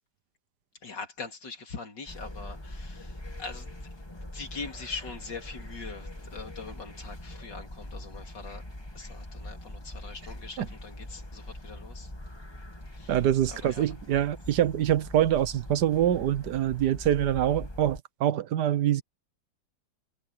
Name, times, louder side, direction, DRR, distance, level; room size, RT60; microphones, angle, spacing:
voice 1, 0.8-3.9 4.3-8.6 8.9-12.1 12.9-13.2 13.5-13.9, left 4 dB, 90° left, 3.7 m, -42 dB
sound 1, 2.1-18.0, left 1 dB, 15° left, 2.0 m, -42 dB
voice 2, 13.1-19.0, right 11 dB, 75° right, 1.5 m, -25 dB
omnidirectional pair, 1.8 m